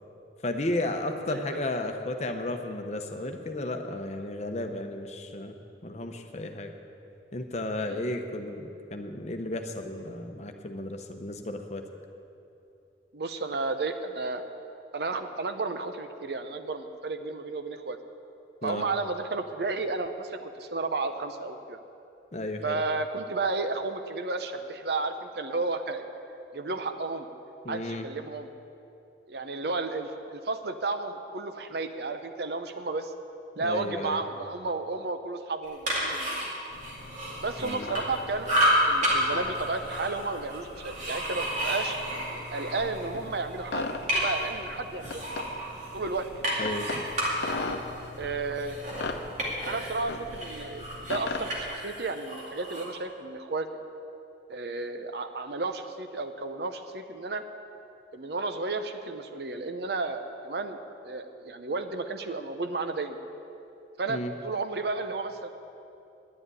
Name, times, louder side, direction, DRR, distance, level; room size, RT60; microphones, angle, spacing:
voice 1, 0.4-5.5 5.8-6.7 7.3-11.8 18.6-18.8 22.3-22.8 27.6-28.1 33.6-34.2 37.6-37.9 46.6-47.0 64.1-64.3, left 1 dB, 40° left, 5 dB, 0.8 m, -33 dB
voice 2, 1.3-1.6 7.9-8.1 13.1-14.4 14.9-18.0 18.6-21.8 22.6-26.1 26.5-27.3 27.7-28.5 29.3-33.1 33.5-36.4 37.4-38.6 38.9-42.0 42.5-45.2 45.9-46.5 48.2-48.8 49.6-53.7 54.5-57.4 58.1-60.8 61.0-63.2 64.0-65.5, right 3 dB, 60° right, 8 dB, 0.7 m, -32 dB
sound 1, 35.6-38.2 38.4-39.2 39.5-43.1 43.5-44.5 45.0-50.0 50.3-52.9, equal, 45° right, 2.6 m, -31 dB
sound 2, 36.7-51.7, left 3 dB, 70° left, 0.8 m, -40 dB
10.5 x 7.9 x 9.7 m, 2.8 s
head